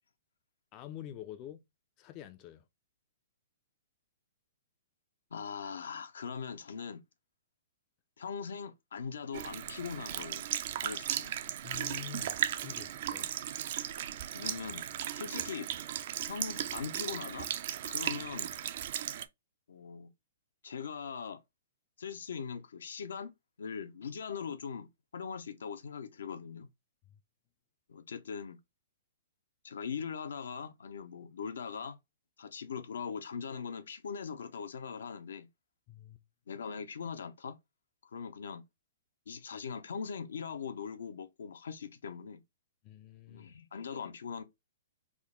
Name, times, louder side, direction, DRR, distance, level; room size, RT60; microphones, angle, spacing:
voice 1, 0.7-1.6 2.0-2.6 11.6-13.3 35.9-36.2 42.8-43.5, left 11 dB, 35° left, 0.4 m, -47 dB
voice 2, 5.3-7.0 8.2-10.4 10.8-11.4 14.3-14.8 15.1-15.7 16.2-17.5 17.8-18.5 19.7-20.1 20.6-21.4 22.0-23.3 23.6-26.7 27.9-28.6 29.6-32.0 32.4-35.5 36.5-37.6 38.1-38.6 39.3-42.4 43.3-44.4, left 6 dB, 80° left, 0.6 m, -41 dB
Sink (filling or washing) / Liquid, 9.3-19.3, right 11 dB, 55° right, 0.4 m, -36 dB
3.7 x 2.1 x 3.7 m
hypercardioid pair, 140°, 0 cm